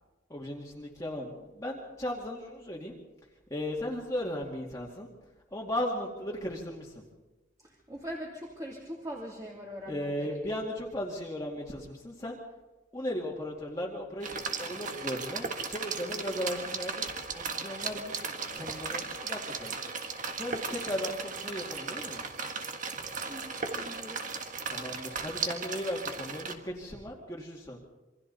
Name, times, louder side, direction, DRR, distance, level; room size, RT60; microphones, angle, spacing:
voice 1, 0.3-2.9 3.5-5.1 5.5-7.0 9.9-12.4 12.9-19.7 20.4-22.2 24.7-27.8, left 1 dB, 15° left, -3 dB, 2.3 m, -36 dB
voice 2, 7.6-10.4 23.3-24.3, equal, 20° right, -2 dB, 3.0 m, -42 dB
sound 1, 14.2-26.5, right 5 dB, 45° right, 1.6 m, -36 dB
27.5 x 24.0 x 4.1 m, 1.1 s
head